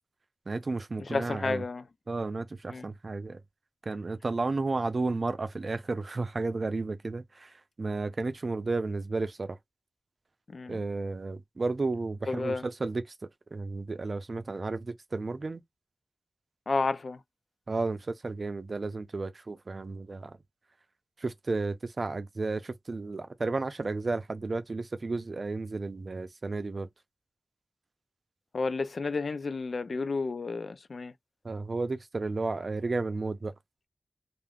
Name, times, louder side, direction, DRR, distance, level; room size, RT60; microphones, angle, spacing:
voice 1, 0.5-1.6 2.1-3.4 3.9-9.6 10.7-13.0 13.5-15.6 17.7-20.4 21.2-26.9 31.4-33.5, right 3 dB, 55° right, 0.5 m, -33 dB
voice 2, 1.1-1.8 2.7-2.9 10.5-10.8 12.3-12.6 16.7-17.2 28.5-31.1, left 3 dB, 70° left, 0.4 m, -31 dB
2.5 x 2.3 x 3.3 m
wide cardioid pair, 85°, 0 cm